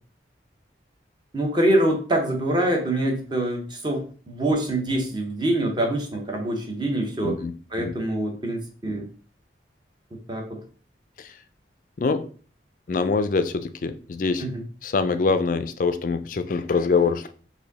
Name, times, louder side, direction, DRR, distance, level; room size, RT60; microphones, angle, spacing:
voice 1, 1.3-7.4 7.7-9.1 10.1-10.6 14.4-14.6, right 1 dB, 25° right, 1 dB, 1.0 m, -25 dB
voice 2, 12.9-14.4 14.8-17.3, left 4 dB, 45° left, 10 dB, 0.4 m, -24 dB
4.7 x 2.7 x 4.0 m, 0.42 s
head